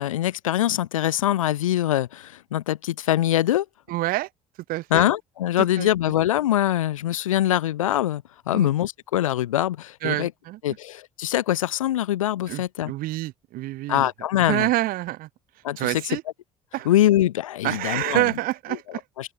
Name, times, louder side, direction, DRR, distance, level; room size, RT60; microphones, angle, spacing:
voice 1, 0.0-3.7 4.9-10.3 10.6-12.9 13.9-14.7 15.6-15.8 16.9-18.2 19.2-19.3, left 13 dB, 75° left, 2.6 m, -23 dB
voice 2, 3.9-4.3 4.7-5.1 5.6-5.9 8.5-8.7 10.0-10.6 12.5-14.1 14.5-15.3 15.8-16.2 16.7-16.9 17.6-19.0, right 17 dB, 55° right, 4.1 m, -27 dB
open air
figure-of-eight pair, 50°, 17 cm